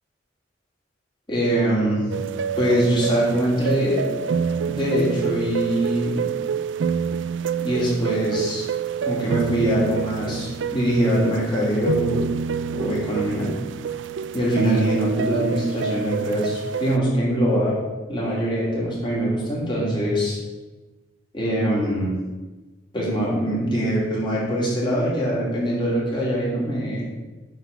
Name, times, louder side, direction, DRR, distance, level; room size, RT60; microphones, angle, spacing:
voice 1, 1.3-2.0 2.6-4.1 4.7-6.4 7.6-8.6 9.0-12.3 12.7-13.5 14.3-17.8 18.1-20.4 21.3-22.2 22.9-27.1, equal, 25° left, -5 dB, 2.8 m, -23 dB
sound 1, 2.1-17.0, right 6 dB, 80° right, 0.4 m, -27 dB
9.3 x 4.0 x 7.0 m, 1.2 s
head